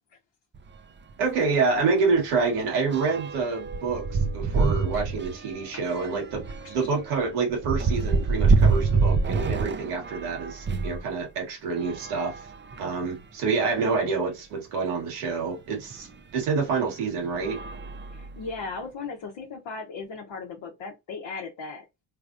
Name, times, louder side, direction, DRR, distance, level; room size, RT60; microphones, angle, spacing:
sound 1, 0.5-0.7 1.1-1.3 1.5-11.0 11.7-13.1 13.8-13.9 14.1-14.2 15.9-16.0 16.7-16.9 17.3-18.6, right 4 dB, 25° right, 0.4 m, -27 dB
voice 1, 1.2-12.5 12.8-16.1 16.3-17.6, right 4 dB, 90° right, 1.4 m, -27 dB
voice 2, 18.1-21.9, left 4 dB, 60° left, 0.9 m, -37 dB
3.4 x 3.3 x 2.5 m
supercardioid pair, 60°, 50 cm